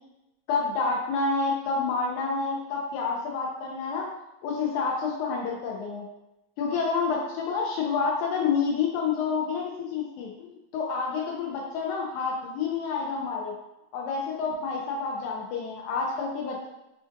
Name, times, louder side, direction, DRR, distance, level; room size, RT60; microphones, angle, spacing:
voice 1, 0.5-4.1 4.4-6.1 6.6-13.5 13.9-16.7, left 5 dB, 90° left, -2 dB, 2.0 m, -28 dB
6.0 x 2.5 x 2.5 m, 0.93 s
omnidirectional pair, 4.7 m